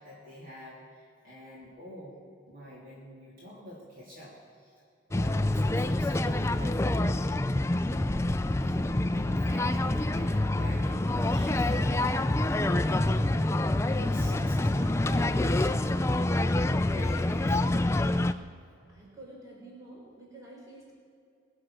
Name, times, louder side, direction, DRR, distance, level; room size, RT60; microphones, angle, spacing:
voice 1, 0.0-4.8 5.1-6.8 7.8-11.9 12.2-13.5 13.8-17.9, equal, 45° right, -7 dB, 3.1 m, -46 dB
sound 1, 5.1-18.3, left 1 dB, 15° left, 0.3 m, -26 dB
voice 2, 18.9-20.9, right 2 dB, 15° right, -5 dB, 4.3 m, -49 dB
21.5 x 7.5 x 6.3 m, 2.4 s
head